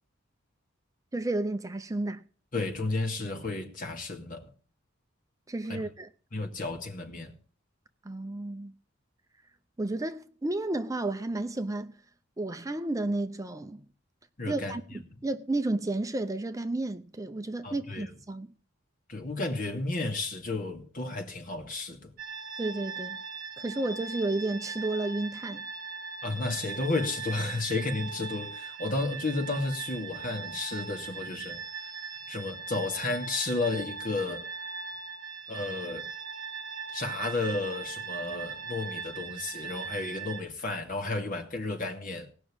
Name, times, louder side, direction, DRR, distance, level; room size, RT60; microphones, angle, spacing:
voice 1, 1.1-2.2 5.5-6.1 8.0-8.7 9.8-11.9 12.4-13.8 14.5-18.5 22.6-23.2 23.6-25.7, right 2 dB, 15° right, 0.6 m, -32 dB
voice 2, 2.5-4.5 5.7-5.8 6.3-7.3 14.4-15.0 17.6-18.1 19.1-22.1 26.2-31.6 31.9-32.0 32.3-34.5 35.5-36.1 36.9-42.3, left 2 dB, 45° left, 2.5 m, -32 dB
sound 1, 22.2-40.4, right 5 dB, 50° right, 2.3 m, -40 dB
18.5 x 6.2 x 8.8 m
head